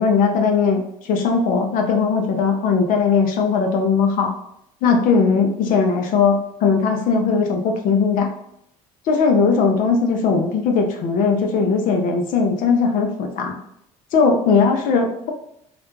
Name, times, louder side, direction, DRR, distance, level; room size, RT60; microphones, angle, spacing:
voice 1, 0.0-4.3 4.8-8.3 9.1-13.6 14.1-15.3, left 5 dB, 65° left, 3 dB, 0.5 m, -19 dB
2.4 x 2.1 x 3.0 m, 0.74 s
supercardioid pair, 80°, 15 cm